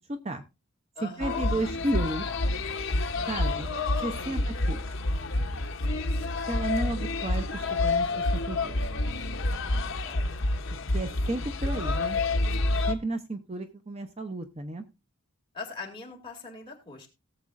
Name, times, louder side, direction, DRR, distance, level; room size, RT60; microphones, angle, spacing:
voice 1, 0.1-0.4 1.0-2.3 3.3-3.7 4.0-4.4 4.7-4.8 5.3-5.5 6.5-8.8 10.7-12.2 12.9-14.9, right 2 dB, 30° right, 8 dB, 0.6 m, -33 dB
voice 2, 0.9-1.5 4.2-4.5 10.0-10.4 15.5-17.1, left 4 dB, 20° left, -1 dB, 2.6 m, -42 dB
sound 1, 1.2-12.9, left 2 dB, 60° left, 0.9 m, -28 dB
18.0 x 7.3 x 2.5 m, 0.27 s
head